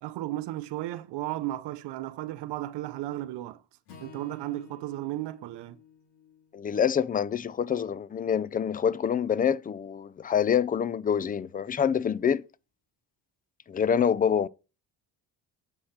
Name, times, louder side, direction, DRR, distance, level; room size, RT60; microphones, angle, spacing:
voice 1, 0.0-3.6 4.0-5.8, right 15 dB, 80° right, 0.7 m, -34 dB
Acoustic guitar / Strum, 3.9-8.2, left 6 dB, 90° left, 2.5 m, -54 dB
voice 2, 6.5-12.4 13.7-14.5, left 8 dB, 20° left, 0.4 m, -26 dB
8.5 x 4.4 x 5.7 m
cardioid pair, 90°, 41 cm